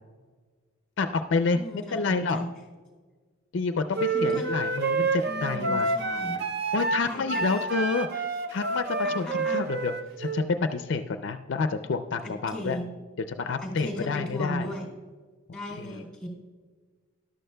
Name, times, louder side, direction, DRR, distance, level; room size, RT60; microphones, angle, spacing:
voice 1, 1.0-2.5 3.5-5.9 6.7-8.3 8.5-12.8 13.3-14.7 15.7-16.0, left 4 dB, 60° left, 8 dB, 0.4 m, -29 dB
voice 2, 1.5-2.0 2.3-2.5 4.1-4.5 5.2-6.4 7.0-7.4 9.2-9.7 12.2-12.9 13.6-14.8 15.5-16.3, left 1 dB, 5° left, -2 dB, 2.6 m, -36 dB
sound 1, 3.9-10.5, right 3 dB, 50° right, 0.6 m, -28 dB
13.0 x 11.5 x 2.2 m, 1.4 s
head